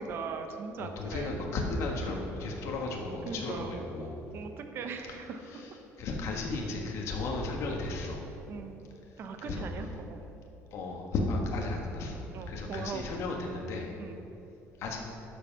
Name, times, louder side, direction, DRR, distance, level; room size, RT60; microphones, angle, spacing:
voice 1, 0.0-1.3 2.0-2.2 3.2-3.8 4.3-5.6 8.5-8.8 9.2-10.2 12.3-13.1 14.0-14.2, right 5 dB, 45° right, 6 dB, 0.8 m, -40 dB
voice 2, 0.8-4.2 5.5-5.6 6.0-8.2 9.4-9.7 10.7-12.2 12.5-13.9 14.8-15.0, left 2 dB, 60° left, 0 dB, 1.5 m, -34 dB
12.0 x 5.6 x 5.9 m, 3.0 s
cardioid pair, 155°, 5 cm